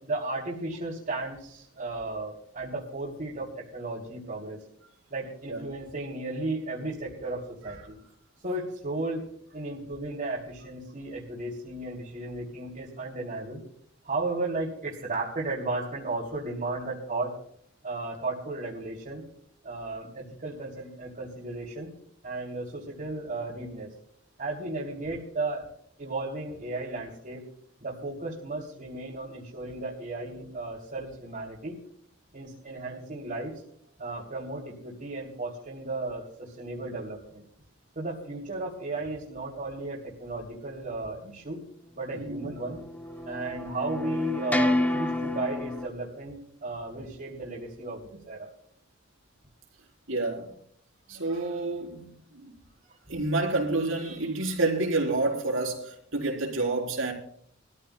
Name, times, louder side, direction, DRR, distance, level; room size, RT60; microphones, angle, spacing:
voice 1, 0.0-4.6 5.1-8.0 8.4-9.3 9.5-13.6 14.0-17.3 17.8-19.2 19.6-21.9 22.2-23.9 24.4-25.7 26.0-27.4 27.8-31.8 32.3-33.5 34.0-37.4 37.9-41.6 41.9-42.8 43.2-48.5, right 2 dB, 45° right, 2.9 m, -34 dB
voice 2, 42.1-42.5 50.1-50.5 51.1-52.5 53.1-57.1, right 2 dB, 75° right, 3.8 m, -29 dB
sound 1, 42.3-45.9, left 1 dB, 10° left, 0.6 m, -29 dB
23.5 x 14.0 x 2.3 m
head